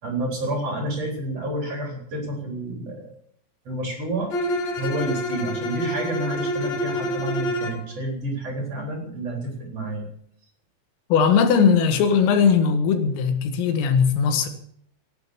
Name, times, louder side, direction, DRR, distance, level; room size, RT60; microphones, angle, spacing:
voice 1, 0.0-3.1 3.6-4.3 4.8-10.0, right 1 dB, 35° right, 4.4 m, -29 dB
Bowed string instrument, 4.3-7.9, equal, 45° left, 2.6 m, -27 dB
voice 2, 11.1-14.5, left 6 dB, 90° left, 4.4 m, -19 dB
18.0 x 9.4 x 7.1 m
omnidirectional pair, 5.7 m